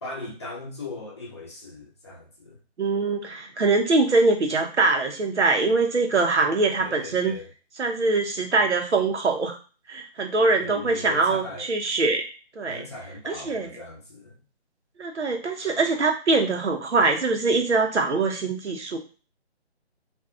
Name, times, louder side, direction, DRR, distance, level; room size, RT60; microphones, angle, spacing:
voice 1, 0.0-2.6 6.8-7.5 10.6-11.7 12.6-14.3, left 3 dB, 25° left, -4 dB, 0.6 m, -39 dB
voice 2, 2.8-7.4 7.8-9.5 9.9-12.3 12.6-12.8 13.3-13.7 15.0-19.0, right 3 dB, 90° right, 3 dB, 0.8 m, -23 dB
2.6 x 2.3 x 2.4 m, 0.36 s
figure-of-eight pair, 150°, 33 cm